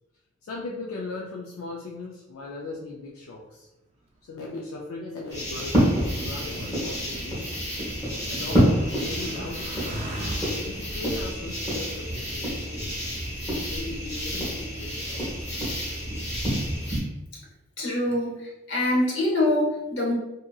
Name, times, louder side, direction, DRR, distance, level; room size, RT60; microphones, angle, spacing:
voice 1, 0.4-3.7 4.2-5.9 6.1-7.6 8.3-9.8 10.5-13.0 13.7-15.3, left 2 dB, 85° left, -2 dB, 0.4 m, -38 dB
Motorcycle, 4.1-13.1 13.9-14.5, right 1 dB, 30° right, 0.3 m, -45 dB
sound 1, 5.3-17.0, equal, 15° left, 1.1 m, -28 dB
voice 2, 17.8-20.1, left 1 dB, 60° left, -3 dB, 0.9 m, -24 dB
2.7 x 2.6 x 2.2 m, 0.97 s
head